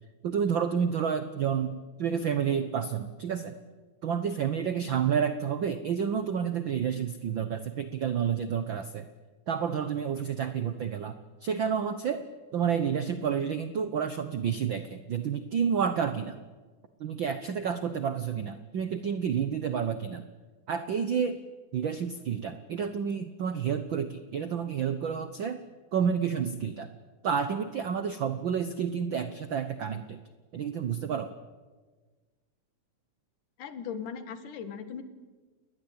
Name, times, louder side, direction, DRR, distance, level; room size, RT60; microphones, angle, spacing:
voice 1, 0.2-3.6 4.0-9.1 9.5-12.3 12.5-16.4 17.0-20.3 20.7-21.4 21.7-25.6 25.9-26.9 27.2-30.2 30.5-31.3, right 7 dB, 85° right, 11 dB, 1.0 m, -30 dB
voice 2, 33.6-35.0, left 7 dB, 80° left, 10 dB, 3.3 m, -38 dB
29.0 x 20.5 x 8.8 m, 1.4 s
omnidirectional pair, 3.7 m